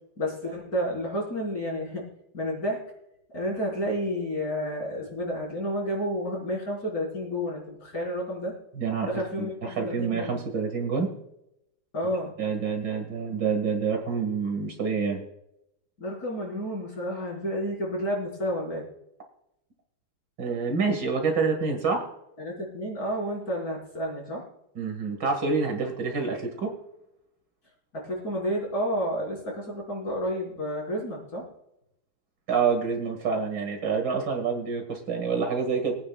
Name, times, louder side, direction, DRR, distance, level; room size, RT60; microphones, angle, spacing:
voice 1, 0.2-2.0 2.3-2.8 3.3-8.5 9.0-10.4 11.9-12.3 16.0-18.9 22.4-24.4 27.9-31.4, equal, 40° left, -3 dB, 4.8 m, -30 dB
voice 2, 8.8-9.1 9.4-11.1 12.4-15.2 20.4-22.0 24.8-26.7 32.5-35.9, right 5 dB, 55° right, 3 dB, 2.4 m, -27 dB
23.0 x 9.4 x 2.3 m, 0.82 s
omnidirectional pair, 2.4 m